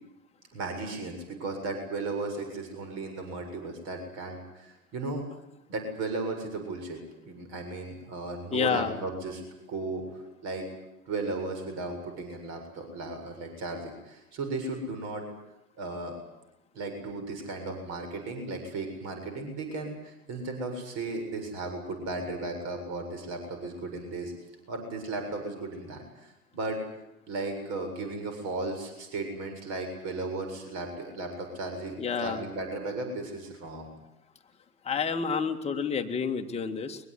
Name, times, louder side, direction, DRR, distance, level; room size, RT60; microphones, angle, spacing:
voice 1, 0.5-5.2 5.7-7.0 7.2-10.0 10.4-10.7 11.1-15.2 15.8-16.2 16.7-24.3 24.7-26.0 26.5-26.8 27.3-33.9, right 3 dB, 35° right, 5 dB, 7.4 m, -35 dB
voice 2, 8.5-8.9 32.0-32.4 34.9-37.0, left 6 dB, 15° left, 4 dB, 2.1 m, -29 dB
23.5 x 22.5 x 9.8 m, 0.89 s
figure-of-eight pair, 105°, 46 cm